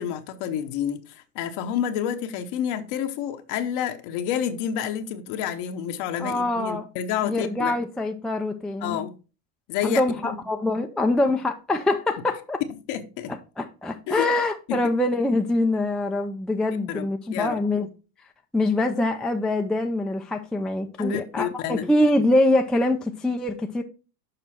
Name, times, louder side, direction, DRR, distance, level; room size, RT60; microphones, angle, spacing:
voice 1, 0.0-7.7 8.8-9.1 9.7-10.4 12.9-13.3 14.1-14.3 14.7-14.8 16.9-17.6 21.0-21.8, left 9 dB, 60° left, 1.0 m, -29 dB
voice 2, 6.2-6.8 7.2-9.0 9.8-12.6 13.6-17.9 18.5-23.8, left 2 dB, ahead, 0.4 m, -24 dB
6.9 x 4.8 x 4.2 m
supercardioid pair, 105°, 45 cm